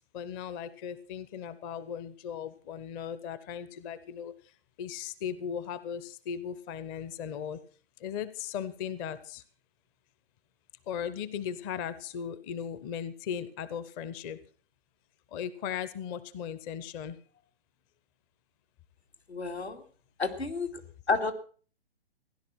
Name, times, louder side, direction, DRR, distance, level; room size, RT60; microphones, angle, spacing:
voice 1, 0.1-4.3 4.8-7.6 8.0-9.4 10.9-14.4 15.3-17.2, left 8 dB, 20° left, 15 dB, 0.6 m, -37 dB
voice 2, 19.3-19.8 20.2-20.8 21.1-21.3, left 4 dB, 80° left, 4 dB, 2.7 m, -30 dB
16.5 x 11.0 x 6.0 m, 0.43 s
figure-of-eight pair, 120°, 32 cm